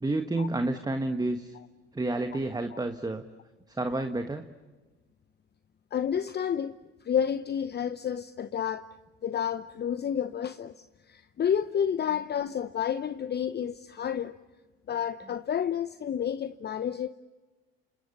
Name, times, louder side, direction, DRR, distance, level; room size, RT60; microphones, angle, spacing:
voice 1, 0.0-1.5 1.9-3.2 3.8-4.5, right 2 dB, 10° right, 1.5 m, -30 dB
voice 2, 5.9-6.7 7.0-8.9 9.2-14.4 14.9-17.1, left 8 dB, 30° left, 0.9 m, -30 dB
30.0 x 27.0 x 6.7 m
hypercardioid pair, 75°, 32 cm